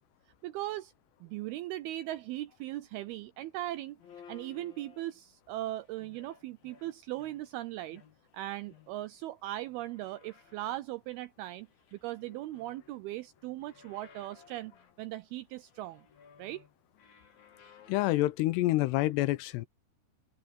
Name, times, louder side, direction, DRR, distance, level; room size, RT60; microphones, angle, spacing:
voice 1, 0.4-0.9 1.2-4.0 4.3-8.0 8.3-14.7 15.0-16.0 16.4-16.6, right 15 dB, 85° right, 2.2 m, -39 dB
sound 1, 4.0-5.3 5.8-7.6 7.9-9.2 9.5-11.0 11.4-13.1 13.3-15.0 15.6-18.1, left 7 dB, 55° left, 4.9 m, -58 dB
voice 2, 17.9-19.7, left 17 dB, 80° left, 2.7 m, -27 dB
omnidirectional pair, 5.1 m